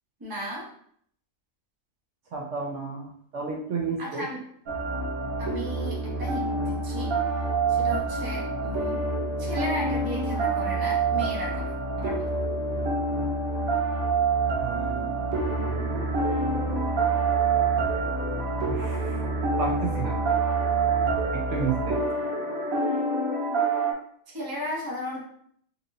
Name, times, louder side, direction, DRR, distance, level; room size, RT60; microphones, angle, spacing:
voice 1, 0.2-0.7 4.0-4.4 5.4-7.1 7.7-9.0 9.4-12.3 24.3-25.3, equal, 20° right, -3 dB, 0.7 m, -35 dB
voice 2, 2.3-4.2 14.6-16.0 18.7-19.2 19.6-20.2 21.3-22.0, right 5 dB, 65° right, 0 dB, 0.9 m, -32 dB
sound 1, 4.7-23.9, right 3 dB, 90° right, 1.2 m, -26 dB
4.1 x 2.9 x 2.6 m, 0.65 s
omnidirectional pair, 1.4 m